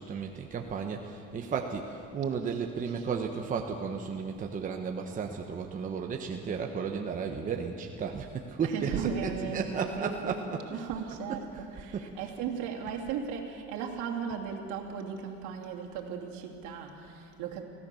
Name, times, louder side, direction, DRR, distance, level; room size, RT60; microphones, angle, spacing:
voice 1, 0.0-10.8 11.1-11.7 11.9-12.3, right 6 dB, 25° right, 3 dB, 1.0 m, -34 dB
voice 2, 2.4-3.1 8.6-17.6, right 6 dB, 75° right, 0 dB, 2.9 m, -37 dB
25.5 x 16.5 x 7.0 m, 2.7 s
cardioid pair, 155°, 30 cm